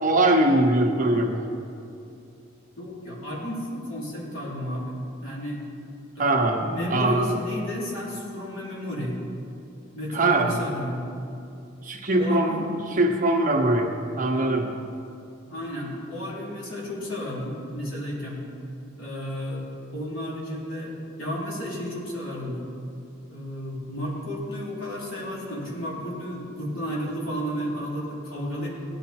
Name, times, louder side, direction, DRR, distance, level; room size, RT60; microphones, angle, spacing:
voice 1, 0.0-1.4 6.2-6.6 6.9-7.3 10.1-10.6 11.8-12.6 12.9-13.9 14.2-14.7, right 2 dB, 40° right, 1 dB, 1.3 m, -21 dB
voice 2, 2.8-5.6 6.2-9.2 9.9-11.1 12.2-12.7 15.5-18.4 19.0-22.6 23.3-28.7, equal, 90° left, -4 dB, 3.3 m, -33 dB
17.0 x 10.0 x 4.3 m, 2.6 s
head